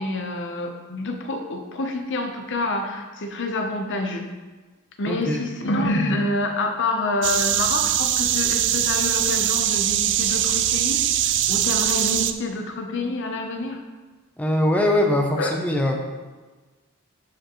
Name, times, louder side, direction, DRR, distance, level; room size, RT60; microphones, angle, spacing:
voice 1, 0.0-4.3 5.0-11.0 11.5-13.8 15.4-15.5, left 2 dB, 55° left, 4 dB, 0.8 m, -27 dB
voice 2, 5.1-5.4 14.4-16.2, left 1 dB, 5° left, 1 dB, 0.6 m, -22 dB
sound 1, 7.2-12.3, right 11 dB, 55° right, 0.4 m, -22 dB
11.5 x 5.0 x 3.0 m, 1.3 s
head